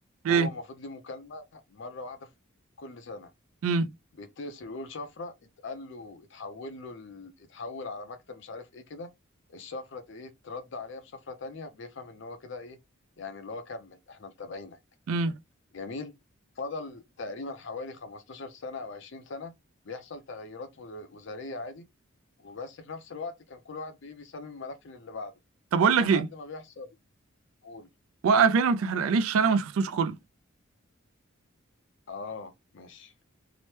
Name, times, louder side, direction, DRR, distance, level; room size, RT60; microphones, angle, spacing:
voice 1, 0.3-2.3 2.8-3.3 4.1-5.3 5.6-9.1 9.5-12.8 13.2-14.8 15.7-16.1 16.6-19.5 19.8-21.9 22.4-25.3 26.0-26.9 27.6-27.9 32.1-33.1, left 3 dB, 60° left, 0.5 m, -40 dB
voice 2, 25.7-26.3 28.2-30.2, right 5 dB, 80° right, 0.4 m, -23 dB
2.9 x 2.1 x 3.1 m
head